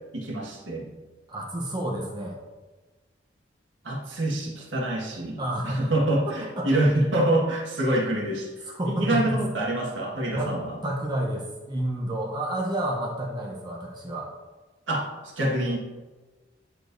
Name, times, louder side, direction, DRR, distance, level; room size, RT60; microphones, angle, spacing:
voice 1, 0.1-0.9 3.8-5.4 5.6-8.5 8.8-10.8 14.9-15.8, right 1 dB, 80° right, -2 dB, 1.6 m, -26 dB
voice 2, 1.3-2.4 5.4-5.9 6.3-6.7 8.7-9.4 10.3-10.5 10.8-14.3, right 1 dB, 25° right, -1 dB, 0.8 m, -30 dB
9.8 x 4.8 x 2.6 m, 1.2 s
head